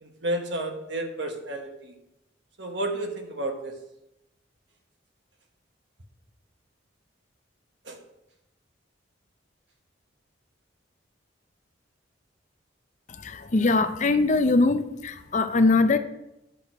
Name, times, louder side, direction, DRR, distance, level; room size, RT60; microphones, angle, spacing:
voice 1, 0.0-1.9 2.6-3.7 7.8-8.0, right 1 dB, 65° right, 4 dB, 1.3 m, -31 dB
voice 2, 13.2-16.0, left 3 dB, 40° left, 10 dB, 0.5 m, -22 dB
10.5 x 6.2 x 4.7 m, 0.89 s
head